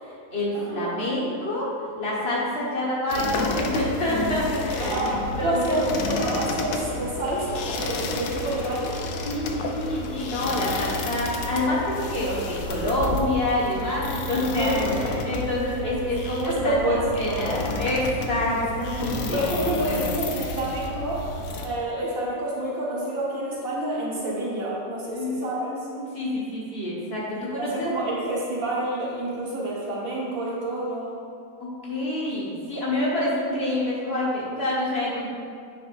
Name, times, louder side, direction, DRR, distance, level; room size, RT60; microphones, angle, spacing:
voice 1, 0.0-5.0 5.4-5.8 9.2-20.1 25.1-27.9 31.6-35.3, left 1 dB, 50° left, -6 dB, 1.7 m, -27 dB
voice 2, 0.5-0.9 4.8-9.0 14.5-15.0 15.8-15.9 16.4-17.6 19.3-21.3 21.6-25.7 27.3-31.1, right 1 dB, 85° right, -5 dB, 2.0 m, -28 dB
sound 1, 3.1-21.7, left 2 dB, 85° left, 1.1 m, -31 dB
9.1 x 6.0 x 2.6 m, 2.2 s
omnidirectional pair, 1.4 m